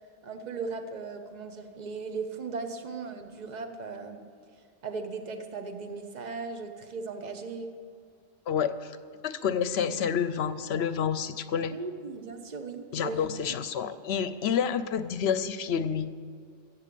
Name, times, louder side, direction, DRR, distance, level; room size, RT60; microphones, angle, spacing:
voice 1, 0.2-4.2 4.8-7.7 11.6-13.3, right 4 dB, 40° right, 6 dB, 1.0 m, -37 dB
voice 2, 8.5-8.9 9.2-11.7 12.9-16.1, left 7 dB, 65° left, 13 dB, 0.8 m, -29 dB
14.5 x 8.4 x 6.8 m, 2.1 s
omnidirectional pair, 1.2 m